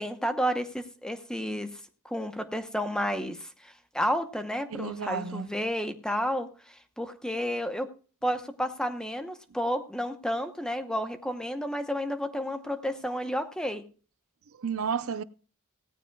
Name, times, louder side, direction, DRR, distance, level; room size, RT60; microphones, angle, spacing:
voice 1, 0.0-1.8 2.1-7.9 8.2-13.8, equal, 5° left, 0.8 m, -31 dB
voice 2, 4.7-5.5 14.6-15.2, right 6 dB, 75° right, 0.6 m, -32 dB
17.0 x 14.0 x 2.3 m
head